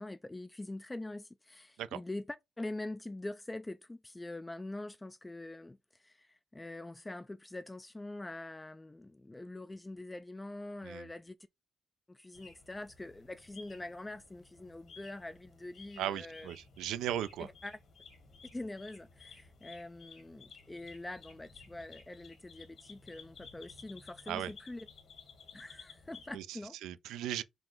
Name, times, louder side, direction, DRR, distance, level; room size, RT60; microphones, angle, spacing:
voice 1, 0.0-11.4 12.1-16.5 17.4-17.8 18.5-24.9 25.5-26.8, left 2 dB, 15° left, 0.3 m, -44 dB
sound 1, 12.3-26.4, left 5 dB, 60° left, 1.5 m, -56 dB
voice 2, 16.0-17.5 24.3-24.5 26.3-26.5 26.8-27.4, right 11 dB, 90° right, 0.4 m, -37 dB
3.9 x 2.5 x 4.4 m
cardioid pair, 90°, 0 cm